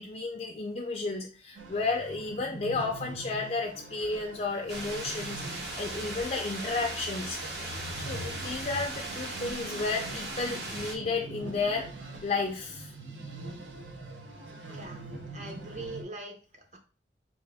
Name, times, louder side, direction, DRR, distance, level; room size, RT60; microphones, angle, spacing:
voice 1, 0.0-7.4 8.0-11.9 12.2-12.9, left 3 dB, 35° left, 1 dB, 0.4 m, -32 dB
sound 1, 1.5-16.0, right 2 dB, 85° right, 0.7 m, -43 dB
sound 2, 4.7-11.0, right 2 dB, 60° right, 0.9 m, -38 dB
voice 2, 14.7-15.0 15.3-16.8, right 2 dB, 40° right, 3 dB, 0.7 m, -42 dB
3.6 x 2.5 x 3.4 m, 0.36 s
head